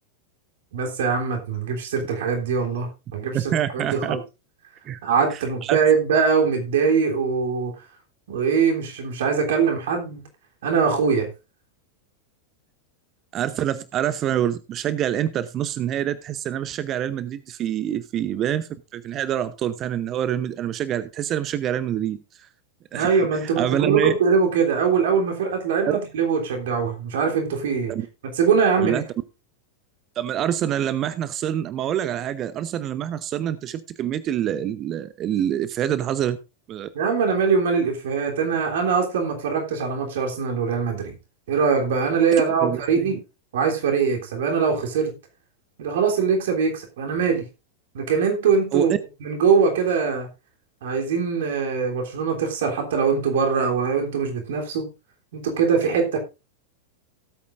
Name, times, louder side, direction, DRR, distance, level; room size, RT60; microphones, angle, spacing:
voice 1, 0.7-4.2 5.0-7.7 8.3-10.2 10.6-11.3 22.9-27.9 28.3-29.0 36.9-41.2 41.5-43.2 43.5-45.1 45.8-47.5 47.9-48.9 49.2-50.3 50.8-54.9 55.3-56.2, right 6 dB, 55° right, 1 dB, 3.3 m, -22 dB
voice 2, 3.3-4.2 4.9-5.0 5.3-5.8 13.3-22.5 22.9-23.1 23.4-24.1 25.8-26.0 27.9-28.1 28.8-29.0 30.2-36.4 36.7-36.9 42.6-43.2 48.7-49.0, right 10 dB, 30° right, 13 dB, 0.8 m, -26 dB
17.5 x 8.4 x 2.6 m, 0.28 s
figure-of-eight pair, 90°, 0 cm